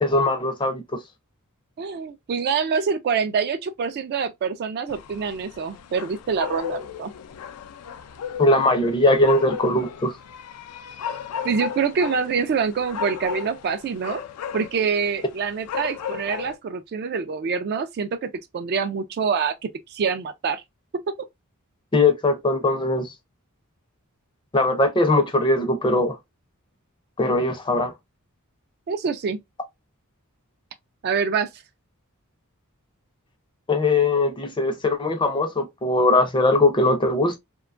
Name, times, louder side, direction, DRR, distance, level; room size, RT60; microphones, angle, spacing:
voice 1, 0.0-1.0 8.4-10.1 21.9-23.1 24.5-26.2 27.2-27.9 33.7-37.4, left 2 dB, 20° left, 0.5 m, -20 dB
voice 2, 1.8-7.1 11.4-14.2 14.5-20.6 21.1-21.3 28.9-29.4 31.0-31.5, right 6 dB, 45° right, 0.3 m, -25 dB
sound 1, 4.9-16.6, left 8 dB, 85° left, 0.4 m, -35 dB
2.8 x 2.2 x 2.4 m
head